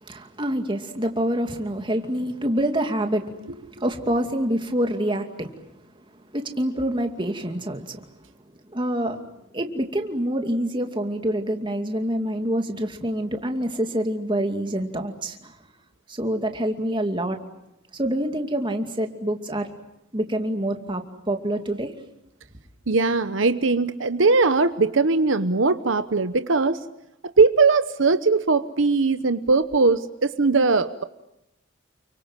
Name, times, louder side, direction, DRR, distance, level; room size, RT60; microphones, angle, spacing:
voice 1, 0.0-5.6 6.3-8.0 8.7-9.2 9.5-15.6 16.1-17.4 17.9-19.7 20.1-21.9, right 1 dB, 25° right, 4 dB, 2.5 m, -26 dB
voice 2, 22.9-26.9 27.4-31.0, right 4 dB, 75° right, 11 dB, 1.0 m, -20 dB
30.0 x 24.0 x 7.4 m, 0.86 s
head